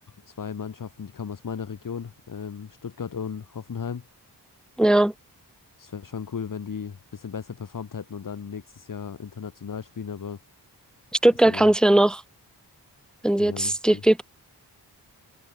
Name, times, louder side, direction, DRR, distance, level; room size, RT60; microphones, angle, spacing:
voice 1, 0.3-4.0 5.8-10.4 11.5-11.7 13.4-14.0, left 6 dB, 50° left, 1.1 m, -35 dB
voice 2, 4.8-5.1 11.2-12.2 13.2-14.2, right 1 dB, ahead, 0.5 m, -19 dB
cardioid pair, 45°, 43 cm